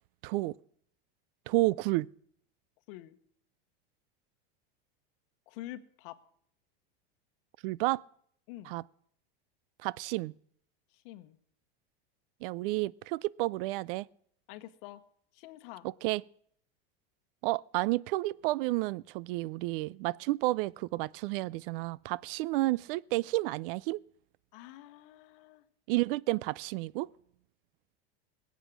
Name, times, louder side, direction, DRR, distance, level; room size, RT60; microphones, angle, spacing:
voice 1, 0.2-0.5 1.5-2.1 7.6-8.0 8.7-8.8 9.8-10.3 12.4-14.1 15.8-16.2 17.4-24.0 25.9-27.1, right 20 dB, 65° right, 0.5 m, -31 dB
voice 2, 5.5-6.2 8.5-8.7 10.9-11.4 14.5-15.0 15.3-15.9 24.5-25.6, left 15 dB, 65° left, 1.1 m, -47 dB
20.5 x 8.3 x 6.0 m
supercardioid pair, 140°, 30 cm